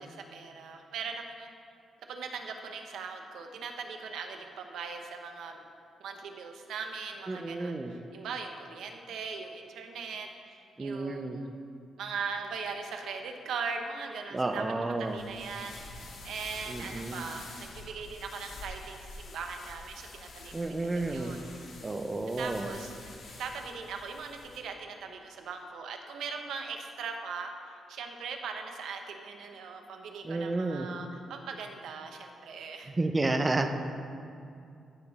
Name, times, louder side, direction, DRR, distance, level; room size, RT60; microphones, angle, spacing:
voice 1, 0.0-1.5 2.1-5.6 6.0-11.5 12.0-14.6 15.0-15.8 16.2-21.4 22.4-22.9 23.4-32.9, right 5 dB, 90° right, 4 dB, 0.8 m, -40 dB
voice 2, 7.3-7.9 10.8-11.4 14.3-15.2 16.7-17.2 20.5-21.4 21.8-22.7 30.2-30.9 33.0-33.7, right 2 dB, 20° right, 7 dB, 0.4 m, -31 dB
sound 1, 15.1-24.6, left 2 dB, 70° left, 1.5 m, -47 dB
14.0 x 5.0 x 4.0 m, 2.5 s
wide cardioid pair, 160°, 0 cm